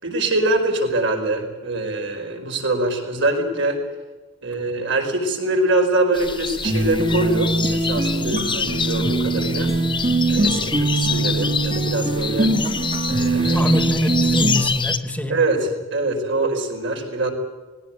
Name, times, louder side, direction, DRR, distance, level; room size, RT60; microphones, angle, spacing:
voice 1, 0.0-3.8 4.4-9.7 10.3-12.5 13.1-13.7 15.3-17.3, right 2 dB, 65° right, 3 dB, 4.9 m, -23 dB
sound 1, 6.1-15.0, left 6 dB, 25° left, 1.1 m, -27 dB
sound 2, 6.6-14.7, right 2 dB, 35° right, 2.1 m, -22 dB
voice 2, 13.5-15.4, left 1 dB, 5° left, 8 dB, 1.6 m, -24 dB
20.0 x 17.5 x 9.0 m, 1.3 s
head